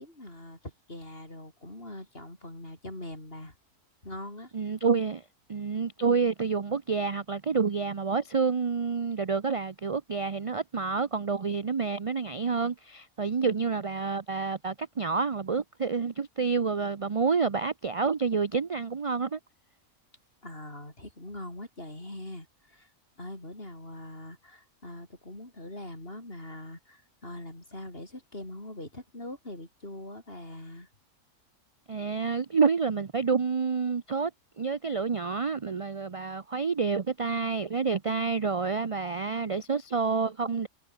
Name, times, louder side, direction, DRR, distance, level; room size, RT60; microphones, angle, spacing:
voice 1, 0.0-3.5 4.0-4.5 20.4-22.9 23.2-30.9, left 1 dB, 40° left, 6.5 m, -42 dB
voice 2, 4.5-5.2 5.5-19.4 31.9-34.3 34.6-40.7, right 5 dB, 40° right, 0.4 m, -28 dB
omnidirectional pair, 1.6 m